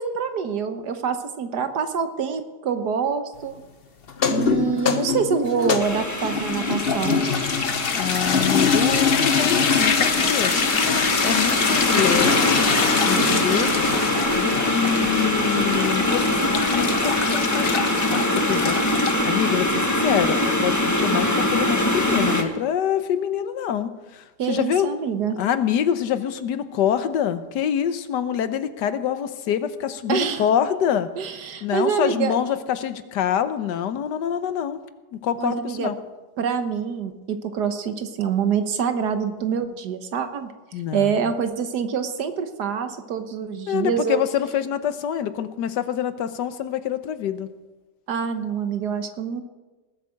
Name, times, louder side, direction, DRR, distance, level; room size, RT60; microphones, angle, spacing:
voice 1, 0.0-3.6 4.3-7.2 24.4-25.4 30.1-30.4 31.2-32.3 35.4-35.9 36.4-40.5 40.9-44.2 48.1-49.4, right 7 dB, 75° right, 9 dB, 1.6 m, -26 dB
sound 1, 4.1-19.2, left 6 dB, 45° left, 0.9 m, -24 dB
sound 2, 5.8-22.4, left 1 dB, 10° left, 1.2 m, -23 dB
voice 2, 7.9-10.5 11.2-12.6 13.0-13.7 14.3-18.8 19.2-24.9 25.4-31.1 31.6-34.8 35.1-36.0 40.7-41.1 43.7-47.5, left 9 dB, 85° left, 12 dB, 1.5 m, -26 dB
19.0 x 8.3 x 6.4 m, 1.2 s
omnidirectional pair, 1.8 m